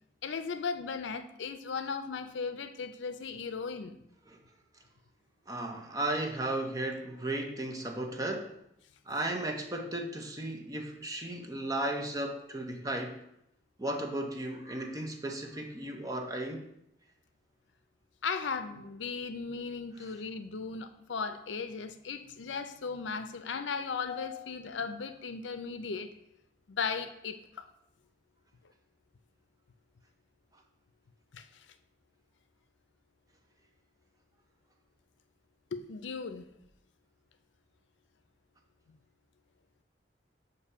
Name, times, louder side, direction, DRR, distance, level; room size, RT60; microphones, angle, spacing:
voice 1, 0.2-4.0 18.2-26.1 26.7-27.7 31.3-31.7 35.7-36.4 38.9-39.0, left 5 dB, 85° left, 9 dB, 0.5 m, -37 dB
voice 2, 5.5-8.5 9.1-13.2 13.8-16.7, right 1 dB, 20° right, 3 dB, 0.6 m, -35 dB
6.7 x 2.7 x 5.4 m, 0.79 s
head